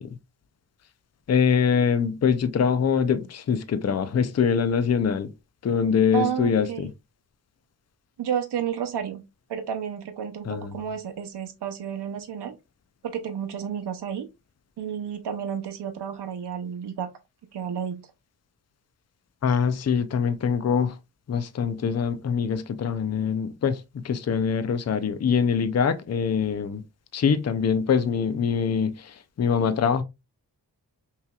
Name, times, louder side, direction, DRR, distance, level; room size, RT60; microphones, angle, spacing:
voice 1, 1.3-5.3 5.6-6.9 10.4-10.8 19.4-20.9 21.3-26.8 27.1-30.0, left 6 dB, 40° left, 0.5 m, -24 dB
voice 2, 6.1-6.9 8.2-9.2 9.5-12.5 13.0-14.3 14.8-17.1 17.5-18.0, right 8 dB, 90° right, 0.7 m, -31 dB
5.6 x 3.1 x 2.3 m
wide cardioid pair, 155°, 40 cm